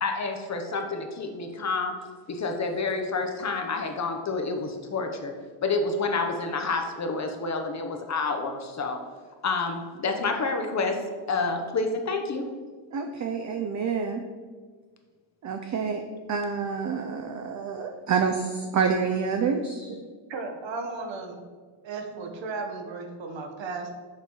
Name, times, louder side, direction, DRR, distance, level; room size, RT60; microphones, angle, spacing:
voice 1, 0.0-1.9 2.3-5.3 5.6-9.0 9.4-11.0 11.3-12.5, left 3 dB, 35° left, 4 dB, 0.7 m, -28 dB
voice 2, 12.9-14.2 15.4-16.0 16.3-19.9, right 6 dB, 40° right, 5 dB, 0.5 m, -28 dB
voice 3, 20.3-21.4 21.8-23.9, right 3 dB, 65° right, 4 dB, 1.1 m, -35 dB
6.6 x 3.0 x 5.3 m, 1.5 s
cardioid pair, 100°, 49 cm